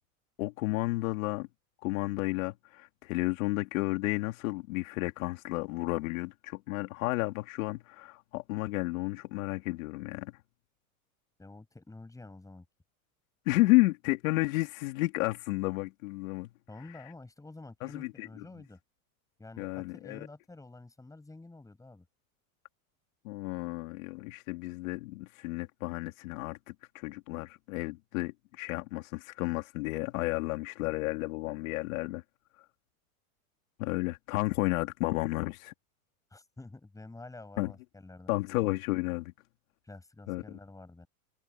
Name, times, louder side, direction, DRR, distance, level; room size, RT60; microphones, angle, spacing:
voice 1, 0.4-1.5 1.8-10.3 13.5-16.5 17.8-18.3 19.6-20.3 23.2-32.2 33.8-35.7 37.6-37.7 38.3-39.3 40.3-40.4, left 21 dB, 70° left, 2.5 m, -32 dB
voice 2, 11.4-12.7 16.7-18.8 19.4-22.1 36.3-38.3 39.8-41.1, left 2 dB, 10° left, 7.5 m, -49 dB
supercardioid pair, 130°, 43 cm